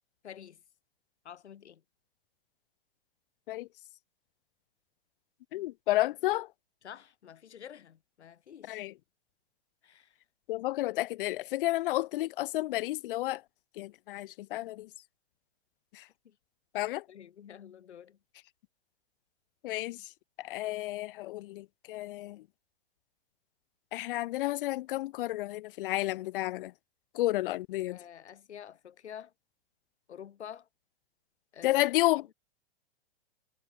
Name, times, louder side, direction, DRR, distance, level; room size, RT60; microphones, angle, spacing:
voice 1, 0.2-0.6 1.2-1.8 6.8-8.8 9.8-10.1 16.2-16.3 17.1-18.2 27.9-29.3 30.1-30.7 31.5-32.1, left 9 dB, 85° left, 6.8 m, -48 dB
voice 2, 5.5-6.5 8.7-8.9 10.5-13.4 13.8-14.9 15.9-16.0 16.7-17.0 19.6-20.0 20.4-22.4 23.9-26.7 27.1-28.0 31.6-32.3, left 17 dB, 55° left, 0.6 m, -31 dB
hypercardioid pair, 135°, 33 cm